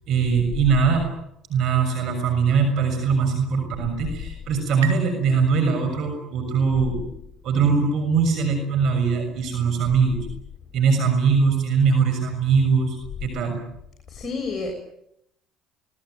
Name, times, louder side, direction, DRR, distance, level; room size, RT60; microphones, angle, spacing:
voice 1, 0.1-1.1 1.5-7.0 7.4-10.3 10.7-13.6, right 5 dB, 60° right, 5 dB, 6.6 m, -21 dB
sound 1, 3.4-6.7, right 7 dB, 90° right, 3.1 m, -41 dB
voice 2, 14.1-14.7, left 4 dB, 30° left, 2 dB, 6.7 m, -29 dB
26.0 x 20.5 x 9.3 m, 0.78 s
hypercardioid pair, 70°, 0 cm